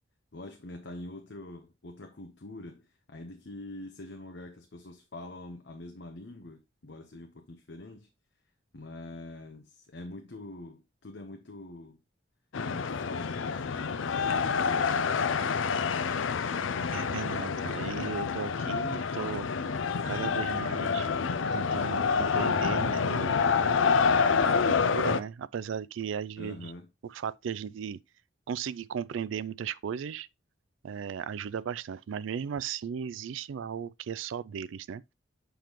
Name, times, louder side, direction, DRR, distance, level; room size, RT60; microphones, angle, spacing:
voice 1, 0.3-8.1 8.7-12.0 12.6-15.6 26.4-26.9, left 2 dB, 65° left, 0.9 m, -45 dB
sound 1, 12.5-25.2, left 5 dB, 90° left, 0.5 m, -28 dB
voice 2, 16.9-19.5 20.0-21.1 21.5-23.4 24.2-26.7 27.0-28.0 28.5-30.3 30.8-35.0, right 7 dB, 85° right, 0.4 m, -36 dB
7.0 x 5.9 x 3.0 m
head